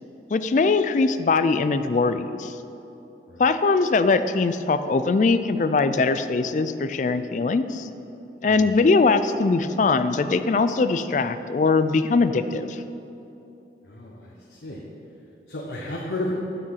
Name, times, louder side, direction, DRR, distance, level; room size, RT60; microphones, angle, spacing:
voice 1, 0.3-2.5 3.4-7.9 8.4-12.8, left 4 dB, 45° left, 11 dB, 0.3 m, -21 dB
voice 2, 13.9-14.8 15.5-16.3, left 1 dB, 75° left, -2 dB, 0.9 m, -33 dB
9.2 x 6.0 x 5.7 m, 2.9 s
head